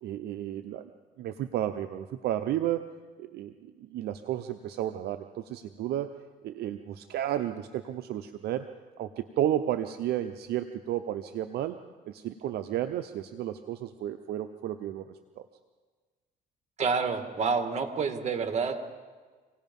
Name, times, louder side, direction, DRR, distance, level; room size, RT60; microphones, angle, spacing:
voice 1, 0.0-0.9 1.2-2.9 3.2-6.2 6.4-8.7 9.0-11.8 12.0-15.5, right 11 dB, 70° right, 9 dB, 0.8 m, -32 dB
voice 2, 16.8-19.0, right 5 dB, 40° right, 6 dB, 2.2 m, -28 dB
26.5 x 18.0 x 5.4 m, 1.4 s
cardioid pair, 110°, 17 cm